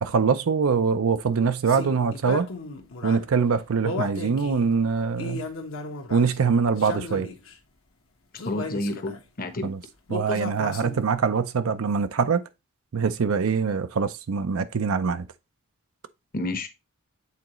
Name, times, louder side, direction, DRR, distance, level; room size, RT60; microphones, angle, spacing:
voice 1, 0.0-2.5 3.0-5.4 6.1-7.3 9.6-9.8 10.1-12.4 12.9-15.3, right 5 dB, 75° right, 0.5 m, -23 dB
sound 1, 1.7-3.2 3.8-4.7 5.1-6.4 6.8-7.5 8.4-9.2 10.1-11.2, left 3 dB, 70° left, 1.2 m, -34 dB
voice 2, 8.3-9.7 16.3-16.7, left 1 dB, 45° left, 1.0 m, -30 dB
8.3 x 3.9 x 3.0 m
head